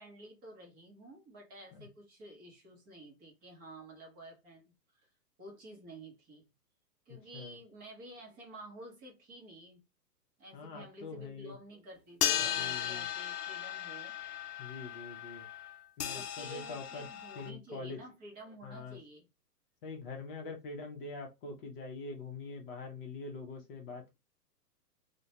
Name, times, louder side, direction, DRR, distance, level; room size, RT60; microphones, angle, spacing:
voice 1, 0.0-5.1 5.4-6.5 7.1-9.8 10.4-14.2 16.0-19.3, right 1 dB, 20° right, 0.7 m, -51 dB
voice 2, 7.1-7.6 10.5-11.6 12.3-13.1 14.6-15.5 16.0-17.1 17.4-18.0 18.6-19.0 19.8-24.2, left 3 dB, 35° left, 0.6 m, -44 dB
sound 1, 12.2-17.5, left 10 dB, 75° left, 0.6 m, -36 dB
2.3 x 2.2 x 2.7 m
hypercardioid pair, 130°, 48 cm